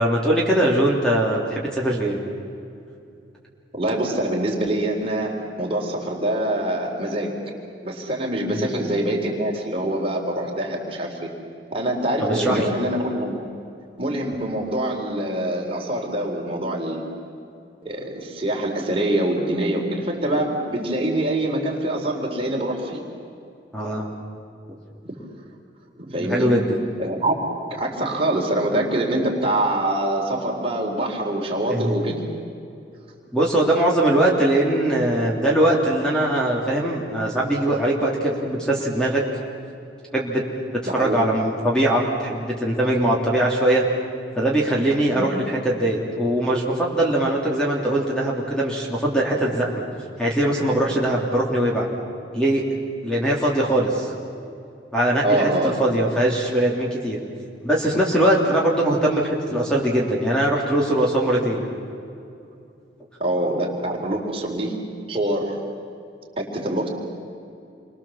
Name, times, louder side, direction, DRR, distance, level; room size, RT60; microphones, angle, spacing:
voice 1, 0.0-2.2 8.5-8.7 12.2-12.6 23.7-24.1 26.2-26.7 31.7-31.9 33.3-39.2 40.1-40.4 40.7-43.8 44.3-49.7 50.2-51.9 52.3-52.6 53.0-54.1 54.9-57.2 57.6-61.6, right 1 dB, 5° left, -3 dB, 3.2 m, -21 dB
voice 2, 3.7-7.4 7.8-11.3 11.7-13.4 14.0-17.1 17.8-23.0 25.1-25.2 26.0-26.5 27.0-32.2 40.8-41.2 45.1-45.4 55.2-56.0 63.2-64.8 65.1-65.6 66.4-66.9, right 1 dB, 30° right, -1 dB, 4.1 m, -25 dB
29.5 x 24.0 x 7.4 m, 2.6 s
head